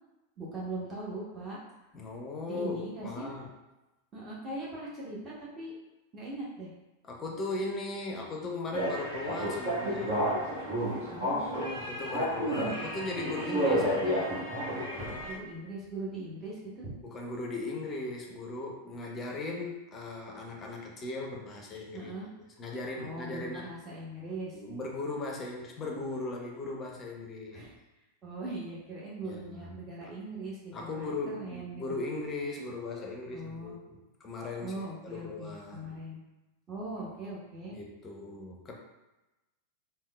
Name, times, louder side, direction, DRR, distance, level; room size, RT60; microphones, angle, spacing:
voice 1, 0.4-1.6 2.5-3.3 4.1-5.7 6.1-6.7 11.1-11.8 12.6-12.8 15.3-16.9 21.9-22.3 22.9-24.6 27.5-27.7 28.2-32.0 33.3-33.8 34.6-36.2 36.7-37.8, right 2 dB, 25° right, -6 dB, 0.9 m, -40 dB
voice 2, 1.9-3.5 7.0-10.3 11.8-14.4 17.0-22.3 22.6-23.6 24.5-27.7 29.2-29.7 30.0-30.1 30.7-35.9 37.7-38.7, left 2 dB, 25° left, 0 dB, 0.5 m, -38 dB
sound 1, 8.7-15.3, equal, 60° right, 1.2 m, -31 dB
3.5 x 2.2 x 2.2 m, 1.0 s
figure-of-eight pair, 90°, 0 cm